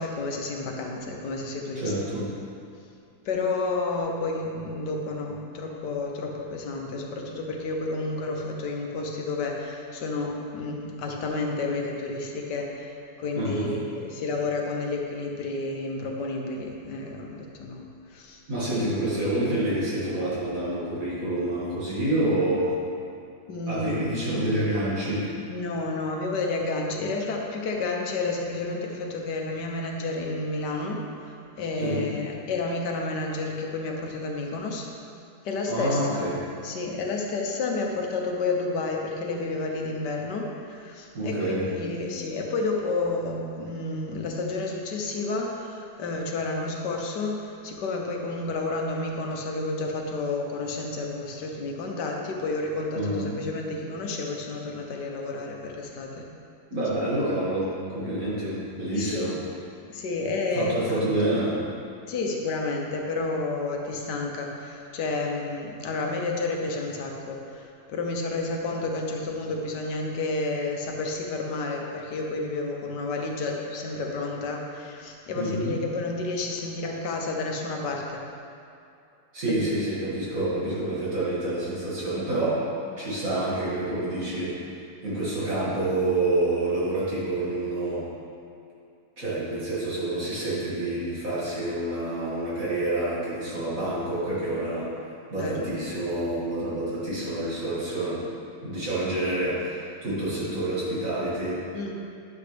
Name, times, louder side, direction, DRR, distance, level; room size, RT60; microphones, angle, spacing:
voice 1, 0.0-1.9 3.2-18.4 23.5-24.1 25.5-31.0 31.6-34.9 35.4-36.3 36.6-56.2 58.9-59.3 59.9-61.2 62.1-78.2 79.5-79.6 95.4-95.8 101.7-101.9, left 3 dB, 80° left, 1 dB, 1.5 m, -30 dB
voice 2, 1.7-2.3 13.3-13.7 18.5-22.8 23.7-25.3 31.8-32.1 35.7-36.4 41.1-41.7 52.9-53.3 56.7-59.4 60.5-61.6 75.3-75.8 79.3-82.7 83.0-88.1 89.2-98.3 98.6-101.7, right 1 dB, 50° right, -9 dB, 2.7 m, -28 dB
10.5 x 7.2 x 3.4 m, 2.5 s
omnidirectional pair, 1.8 m